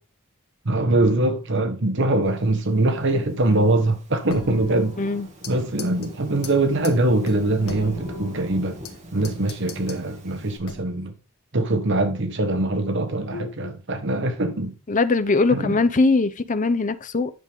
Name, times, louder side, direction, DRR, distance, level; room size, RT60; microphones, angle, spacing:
voice 1, 0.6-5.0 5.5-8.8 9.1-11.1 11.5-14.8 15.5-15.8, right 2 dB, 55° right, 1.1 m, -22 dB
Thunderstorm / Rain, 2.9-10.6, equal, 35° right, 2.0 m, -41 dB
sound 1, 4.3-5.5 5.8-6.1 6.4-6.5 6.8-6.9 7.3-8.9 9.2-10.0 10.6-11.1, left 3 dB, 70° left, 1.4 m, -38 dB
voice 2, 5.0-5.3 13.3-13.7 14.9-17.3, left 3 dB, 35° left, 0.6 m, -21 dB
9.9 x 6.7 x 3.6 m
head